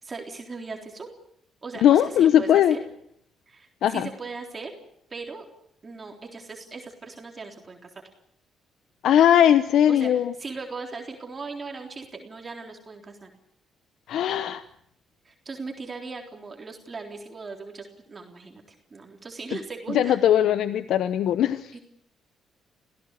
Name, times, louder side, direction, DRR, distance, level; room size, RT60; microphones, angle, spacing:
voice 1, 0.0-1.1 1.6-2.8 3.5-4.7 5.1-5.5 5.8-8.0 9.9-13.3 15.2-18.6 18.9-20.2 20.5-20.6 21.7-21.8, right 4 dB, 30° right, 2 dB, 3.7 m, -38 dB
voice 2, 1.8-2.7 3.8-4.1 9.0-10.3 14.1-14.6 19.9-21.7, left 10 dB, 75° left, 12 dB, 0.9 m, -19 dB
26.5 x 17.0 x 8.3 m, 0.71 s
cardioid pair, 90°, 0 cm